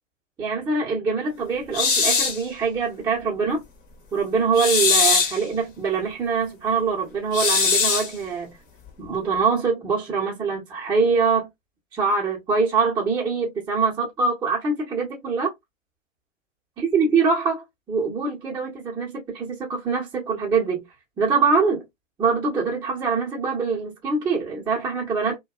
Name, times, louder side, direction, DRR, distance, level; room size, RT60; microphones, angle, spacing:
voice 1, 0.4-3.6 4.1-8.5 9.0-11.5 11.9-15.5 16.8-20.8 21.2-21.8 22.2-25.4, right 5 dB, 10° right, 0.8 m, -24 dB
sound 1, 1.7-2.4 4.5-5.4 7.3-8.1, left 5 dB, 25° left, 0.8 m, -20 dB
2.6 x 2.2 x 2.4 m
hypercardioid pair, 125°, 38 cm